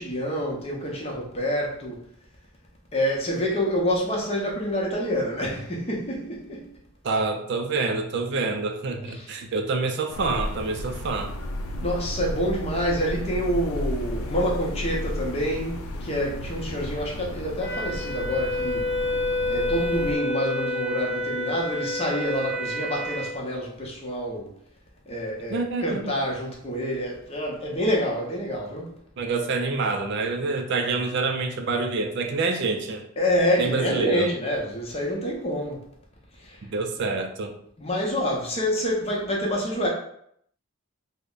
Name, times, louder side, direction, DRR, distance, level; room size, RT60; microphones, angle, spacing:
voice 1, 0.0-2.1 2.9-6.7 9.1-9.3 11.8-18.9 19.5-24.5 25.1-28.9 33.2-35.8 36.4-36.6 37.8-39.9, equal, 30° left, 0.7 m, -27 dB
voice 2, 7.0-11.3 25.5-26.2 29.2-33.1 33.6-34.3 36.6-37.6, right 3 dB, 55° right, 0.4 m, -27 dB
sound 1, 10.1-20.2, left 1 dB, 85° left, 0.5 m, -33 dB
Wind instrument woodwind instrument, 17.6-23.3, left 2 dB, 5° right, 0.9 m, -28 dB
3.2 x 2.1 x 3.8 m
head